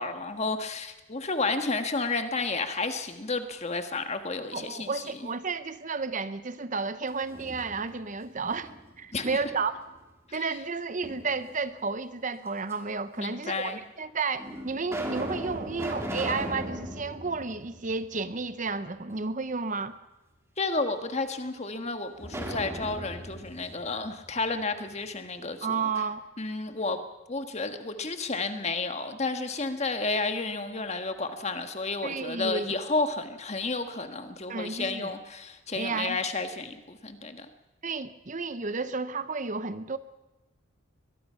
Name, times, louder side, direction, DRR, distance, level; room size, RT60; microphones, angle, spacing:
voice 1, 0.0-5.0 9.1-9.3 10.3-10.5 13.2-13.8 20.6-25.8 26.4-27.0 27.3-37.5, left 3 dB, 30° left, 7 dB, 1.5 m, -31 dB
voice 2, 4.5-8.7 9.0-9.8 10.3-19.9 25.6-26.2 32.0-32.7 34.5-35.1 35.7-36.2 37.8-40.0, right 4 dB, 35° right, 13 dB, 0.8 m, -32 dB
sound 1, 7.1-8.1 8.5-9.8 11.0-11.8 12.7-12.8 13.7-13.8 14.4-18.5 18.8-18.9 22.2-25.0, right 1 dB, 10° right, 2.6 m, -38 dB
22.5 x 22.0 x 5.7 m, 1.0 s
head